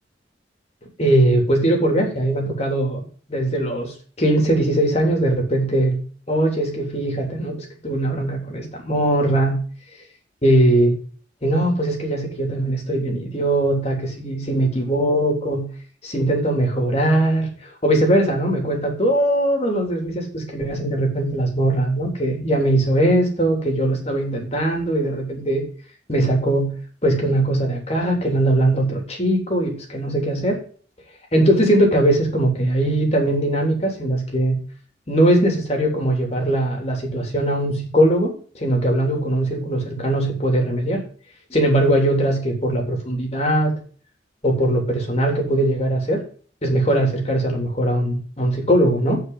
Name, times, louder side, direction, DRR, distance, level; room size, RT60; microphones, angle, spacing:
voice 1, 1.0-3.0 3.3-6.0 6.3-9.6 10.4-10.9 11.4-15.6 16.0-17.5 17.8-25.6 26.1-26.7 27.0-30.6 31.3-34.6 35.1-41.0 41.5-43.7 44.4-46.2 46.6-49.2, right 1 dB, 35° left, 1 dB, 3.4 m, -20 dB
8.2 x 5.9 x 7.7 m, 0.41 s
head